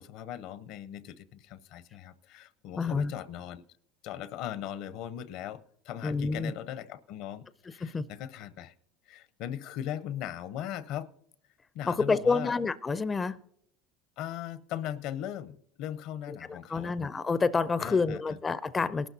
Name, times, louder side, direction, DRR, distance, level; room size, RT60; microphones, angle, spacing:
voice 1, 0.0-3.6 4.0-5.6 5.9-8.7 9.1-11.1 11.7-12.5 14.2-17.0 17.8-18.4, left 11 dB, 65° left, 16 dB, 0.7 m, -39 dB
voice 2, 2.8-3.1 6.0-6.5 7.8-8.0 11.9-13.4 16.3-19.1, left 4 dB, 20° left, 15 dB, 0.4 m, -28 dB
18.5 x 12.0 x 2.7 m, 0.70 s
supercardioid pair, 120°, 0 cm